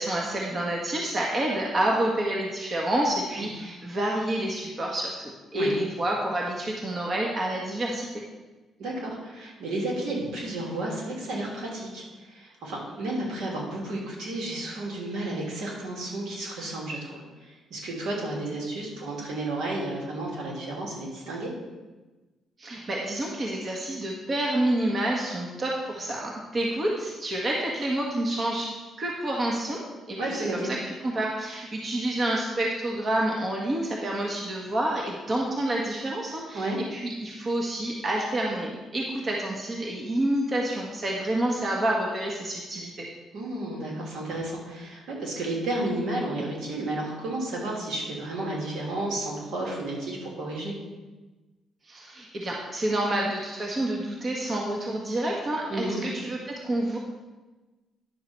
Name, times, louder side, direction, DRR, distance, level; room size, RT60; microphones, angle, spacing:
voice 1, 0.0-8.2 22.6-28.7 29.0-30.8 31.0-43.1 51.8-57.0, right 1 dB, 40° right, -1 dB, 1.5 m, -28 dB
voice 2, 8.8-21.5 30.2-30.7 36.5-36.8 43.3-50.8 55.7-56.0, right 2 dB, 75° right, -2 dB, 2.9 m, -32 dB
10.5 x 6.8 x 4.5 m, 1.2 s
cardioid pair, 90°, 0 cm